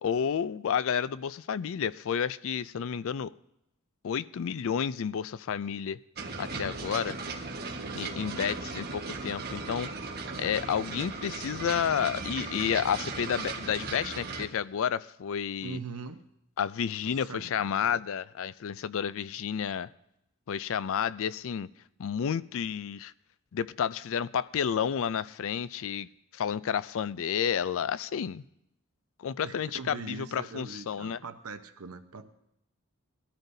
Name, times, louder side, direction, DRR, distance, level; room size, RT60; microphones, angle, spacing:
voice 1, 0.0-3.3 4.0-6.0 6.4-7.2 7.9-9.9 10.4-15.8 16.6-19.9 20.5-21.7 22.0-23.1 23.5-28.4 29.2-31.2, left 8 dB, 65° left, 17 dB, 0.4 m, -31 dB
sound 1, 6.2-14.5, right 3 dB, 45° right, 1.4 m, -37 dB
voice 2, 15.6-16.2 17.0-17.7 29.4-32.3, right 4 dB, 80° right, 8 dB, 0.8 m, -42 dB
21.0 x 13.0 x 2.7 m, 0.80 s
head